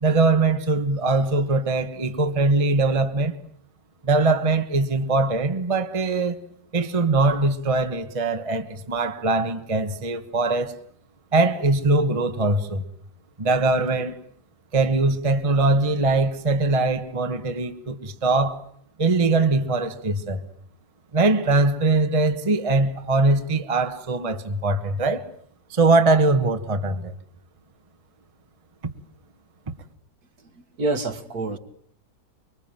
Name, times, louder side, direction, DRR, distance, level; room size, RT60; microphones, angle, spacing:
voice 1, 0.0-3.3 4.0-6.4 6.7-10.7 11.3-12.8 13.4-14.2 14.7-18.6 19.0-20.4 21.1-25.2 25.7-27.1, right 3 dB, 20° right, 1.2 m, -21 dB
voice 2, 30.4-31.6, right 2 dB, 55° right, 2.1 m, -28 dB
24.0 x 23.5 x 9.0 m
omnidirectional pair, 2.0 m